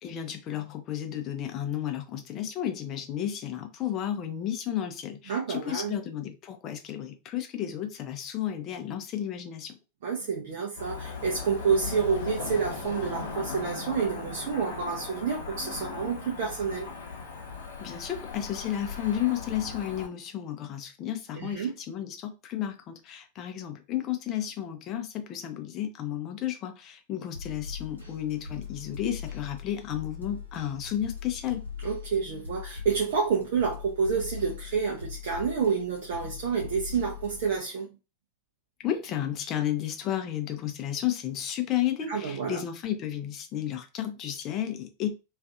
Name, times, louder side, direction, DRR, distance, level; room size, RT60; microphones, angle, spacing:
voice 1, 0.0-9.8 17.8-31.6 38.8-45.1, left 11 dB, 35° left, 0.5 m, -32 dB
voice 2, 5.3-5.9 10.0-16.9 21.3-21.7 31.8-37.9 42.1-42.6, right 6 dB, 55° right, 0.5 m, -29 dB
Cricket / Motor vehicle (road), 10.8-20.1, left 4 dB, 65° left, 0.7 m, -38 dB
sound 1, 27.3-37.6, left 7 dB, 85° right, 0.9 m, -41 dB
2.4 x 2.4 x 2.4 m
figure-of-eight pair, 90°, 0 cm